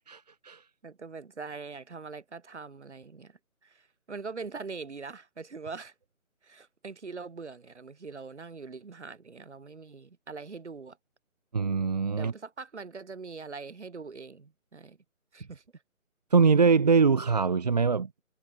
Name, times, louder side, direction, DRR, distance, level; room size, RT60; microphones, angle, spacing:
voice 1, 0.1-0.6 11.5-12.3 16.3-18.1, right 5 dB, 30° right, 1.4 m, -23 dB
voice 2, 0.8-5.9 6.4-11.0 12.2-15.0 15.3-15.6, right 4 dB, 55° right, 6.8 m, -42 dB
figure-of-eight pair, 165°, 42 cm